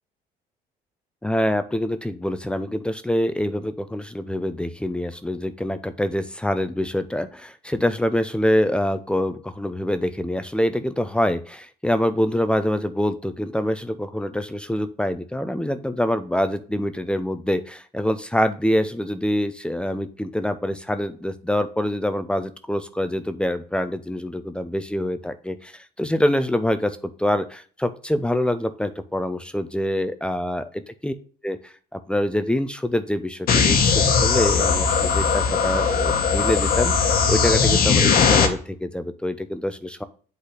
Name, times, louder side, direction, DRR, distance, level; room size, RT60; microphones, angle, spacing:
voice 1, 1.2-31.1 31.4-40.0, left 1 dB, 5° left, 11 dB, 0.5 m, -25 dB
sound 1, 33.5-38.5, left 5 dB, 60° left, 1.3 m, -19 dB
7.9 x 4.1 x 3.2 m, 0.43 s
cardioid pair, 110°, 17 cm